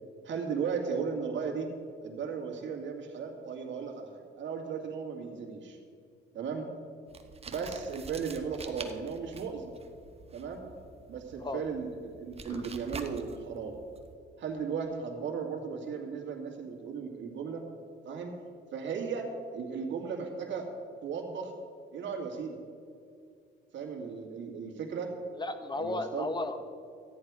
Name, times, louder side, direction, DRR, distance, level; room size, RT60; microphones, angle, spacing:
voice 1, 0.2-1.7 2.0-5.8 6.3-6.7 7.5-9.7 10.3-10.7 11.1-13.8 14.4-17.6 18.0-18.3 18.7-20.7 21.0-21.5 21.9-22.6 23.7-25.1 25.8-26.3, right 6 dB, 70° right, 2 dB, 2.0 m, -36 dB
sound 1, 7.1-14.1, right 4 dB, 30° right, 1.0 m, -47 dB
voice 2, 25.4-26.6, left 2 dB, 20° left, 9 dB, 1.0 m, -34 dB
13.5 x 9.5 x 4.8 m, 2.4 s
cardioid pair, 90°, 20 cm